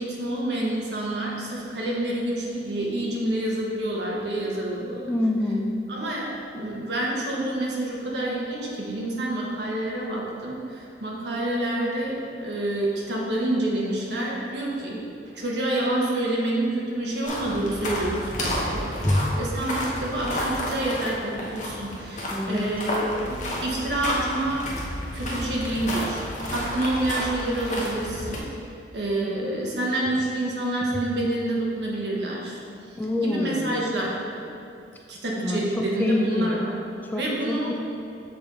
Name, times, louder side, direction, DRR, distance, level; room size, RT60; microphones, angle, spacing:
voice 1, 0.0-5.0 5.9-15.0 15.3-19.0 19.4-24.6 25.1-26.2 26.5-28.5 28.9-32.6 33.2-34.2 35.1-36.7 37.1-37.7, right 1 dB, 70° right, -3 dB, 1.2 m, -28 dB
voice 2, 5.1-5.8 19.0-19.3 22.3-22.7 29.2-29.3 30.9-31.0 33.0-33.9 35.4-36.7 37.1-37.7, left 1 dB, 10° left, 1 dB, 0.3 m, -26 dB
sound 1, 17.2-28.4, equal, 45° left, 1.0 m, -31 dB
6.9 x 3.9 x 4.2 m, 2.5 s
head